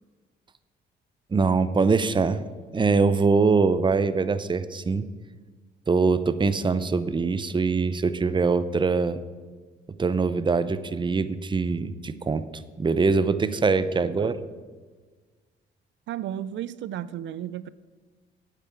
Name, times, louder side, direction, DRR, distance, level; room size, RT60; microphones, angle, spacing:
voice 1, 1.3-2.4 2.7-5.1 5.9-9.2 9.9-12.5 12.8-14.3, right 4 dB, 25° right, 0.7 m, -23 dB
voice 2, 14.0-14.4 16.1-17.7, right 11 dB, 70° right, 0.4 m, -34 dB
9.2 x 8.3 x 8.4 m
cardioid pair, 90°, 20 cm